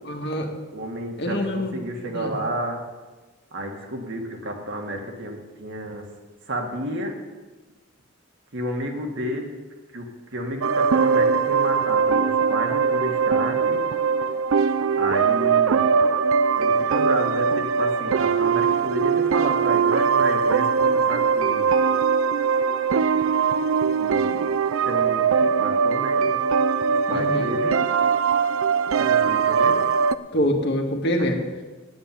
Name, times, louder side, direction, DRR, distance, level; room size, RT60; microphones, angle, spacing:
voice 1, 0.0-0.5 1.2-1.8 2.1-2.3 27.1-27.5 30.3-31.4, equal, 55° left, 2 dB, 1.8 m, -25 dB
voice 2, 0.7-1.5 1.7-2.9 3.5-6.0 6.5-7.2 8.5-9.5 9.9-10.1 10.3-13.8 15.0-15.9 16.5-21.7 24.0-24.5 24.8-25.3 25.6-26.4 27.1-27.9 28.8-29.8, right 1 dB, 60° right, 2 dB, 2.1 m, -31 dB
sound 1, 10.6-30.1, right 6 dB, 80° right, 0.5 m, -21 dB
9.6 x 9.1 x 8.6 m, 1.2 s
head